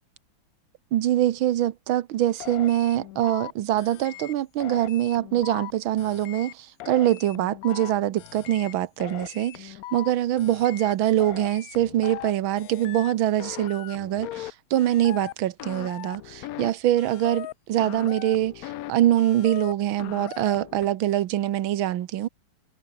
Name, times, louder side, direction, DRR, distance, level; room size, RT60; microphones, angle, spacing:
voice 1, 0.9-22.3, right 13 dB, 90° right, 1.7 m, -24 dB
sound 1, 2.4-3.5 3.8-4.3 4.6-5.7 6.0-6.5 6.8-7.9 8.2-8.7 9.0-10.1 10.4-10.9 11.2-12.3 12.6-13.1 13.4-14.5 14.8-15.3 15.6-16.7 17.0-17.5 17.8-18.9 19.2-19.7 20.0-20.9, left 15 dB, 85° left, 0.7 m, -39 dB
omnidirectional pair, 2.1 m